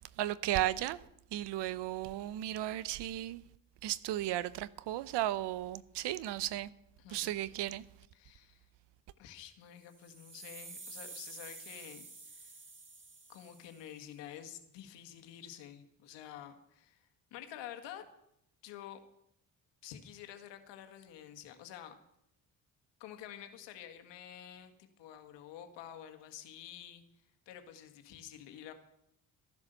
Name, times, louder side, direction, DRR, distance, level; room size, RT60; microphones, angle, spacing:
voice 1, 0.2-1.0 1.3-3.4 3.8-6.7 7.1-7.8, right 14 dB, 70° right, 0.8 m, -35 dB
voice 2, 7.0-7.4 8.1-8.7 9.2-12.6 13.3-18.1 18.6-19.0 19.8-21.9 23.0-27.0 27.5-28.7, left 10 dB, 80° left, 1.8 m, -49 dB
sound 1, 9.8-14.0, right 3 dB, 30° right, 2.1 m, -50 dB
14.0 x 11.0 x 6.8 m
supercardioid pair, 60°, 42 cm